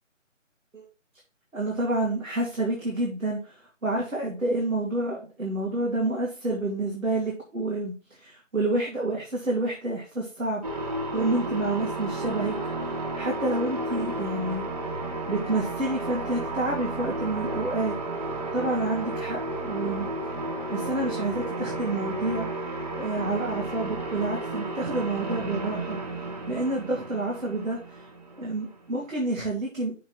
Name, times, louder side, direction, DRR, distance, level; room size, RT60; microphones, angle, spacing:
voice 1, 1.5-10.8 11.1-12.6 13.1-14.6 15.3-18.0 18.5-20.1 20.7-22.5 23.0-26.0 26.5-28.1 28.4-29.9, right 2 dB, 85° right, -2 dB, 2.4 m, -29 dB
sound 1, 10.6-28.9, right 2 dB, 30° right, 1.8 m, -32 dB
6.4 x 4.5 x 5.8 m, 0.36 s
figure-of-eight pair, 155°, 39 cm